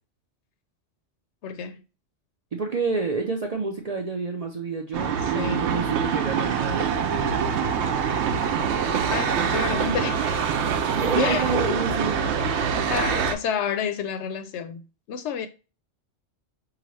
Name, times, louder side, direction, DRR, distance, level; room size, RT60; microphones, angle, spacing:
voice 1, 1.4-1.8 5.2-5.8 9.1-10.5 11.2-11.8 12.9-15.5, left 7 dB, 75° left, 0.9 m, -30 dB
voice 2, 2.5-7.7 10.9-12.1, right 5 dB, 50° right, 0.4 m, -29 dB
sound 1, 4.9-13.3, right 7 dB, 75° right, 0.8 m, -25 dB
4.8 x 2.5 x 3.1 m
omnidirectional pair, 1.2 m